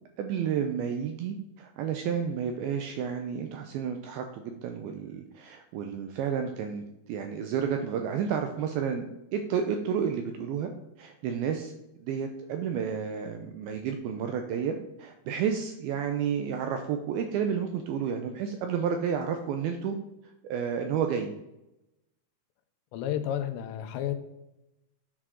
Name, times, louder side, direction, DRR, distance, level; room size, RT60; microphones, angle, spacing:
voice 1, 0.2-10.7 11.0-11.7 12.0-20.0 20.4-21.3, right 7 dB, 80° right, 5 dB, 2.2 m, -31 dB
voice 2, 22.9-24.1, left 10 dB, 85° left, 9 dB, 2.9 m, -31 dB
10.0 x 4.8 x 3.7 m, 0.92 s
omnidirectional pair, 4.9 m